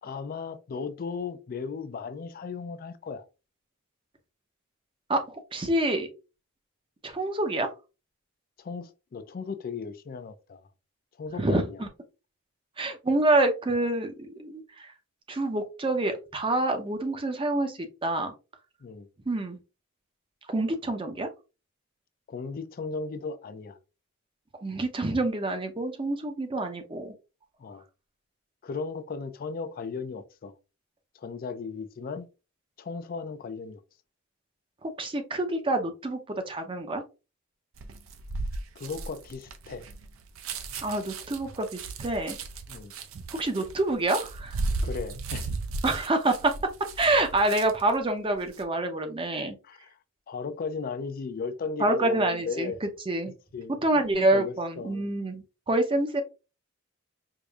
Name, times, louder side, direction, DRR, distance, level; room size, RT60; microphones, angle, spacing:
voice 1, 0.0-3.3 8.6-10.6 11.2-11.9 18.8-19.1 22.3-23.8 27.6-27.8 28.6-30.5 31.1-32.3 32.8-33.8 38.8-39.8 42.7-42.9 44.8-45.5 49.6-50.0 50.3-52.8 53.5-53.8 54.1-55.0, left 5 dB, 45° left, 0.4 m, -36 dB
voice 2, 5.1-6.1 7.0-7.7 11.4-11.9 12.8-14.9 15.3-18.3 19.3-19.6 20.5-21.3 24.6-27.1 34.8-37.0 40.8-42.4 43.3-44.6 45.8-46.6 47.0-49.5 51.8-52.7 53.1-53.3 53.8-56.2, right 2 dB, 25° right, 0.6 m, -27 dB
sound 1, 37.8-47.9 48.3-48.6, right 3 dB, 70° right, 0.5 m, -35 dB
4.7 x 2.6 x 2.3 m
head